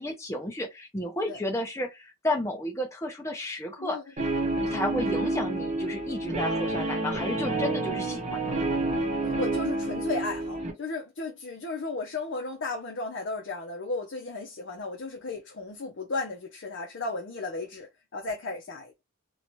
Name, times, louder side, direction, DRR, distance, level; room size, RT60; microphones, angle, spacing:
voice 1, 0.0-4.0 4.6-8.6, left 1 dB, 15° left, 0.6 m, -32 dB
Guitar, 4.2-10.7, right 2 dB, 35° right, 0.7 m, -29 dB
voice 2, 9.2-18.9, left 3 dB, 60° left, 0.6 m, -34 dB
2.7 x 2.1 x 3.0 m
head